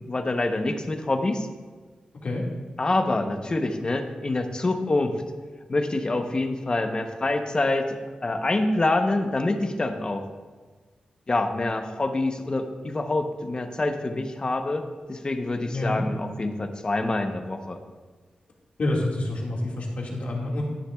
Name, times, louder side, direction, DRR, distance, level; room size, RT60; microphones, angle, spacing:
voice 1, 0.1-1.5 2.8-5.2 5.7-10.2 11.3-17.8, left 2 dB, 35° left, 6 dB, 0.8 m, -26 dB
voice 2, 15.7-16.0 18.8-20.6, left 2 dB, 60° left, -2 dB, 1.9 m, -27 dB
11.5 x 9.7 x 2.3 m, 1.4 s
wide cardioid pair, 100°, 3 cm